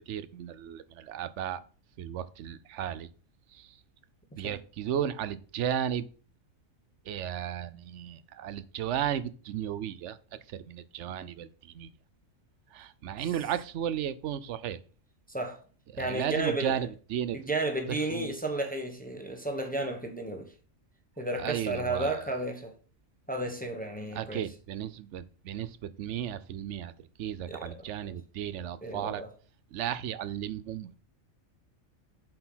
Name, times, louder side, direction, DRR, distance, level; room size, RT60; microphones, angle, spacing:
voice 1, 0.1-1.6 2.0-3.1 3.6-3.7 4.4-6.1 7.1-10.2 10.5-11.5 11.7-11.9 12.7-14.8 15.9-17.4 18.1-18.3 21.4-22.2 24.1-26.9 27.2-29.2 29.7-31.0, right 10 dB, 65° right, 0.9 m, -34 dB
voice 2, 15.3-15.6 16.0-16.8 17.3-20.5 21.2-22.7 23.3-24.5 27.5-27.9 28.8-29.3, right 2 dB, 5° left, 1.0 m, -33 dB
7.6 x 4.7 x 5.6 m
omnidirectional pair, 1.4 m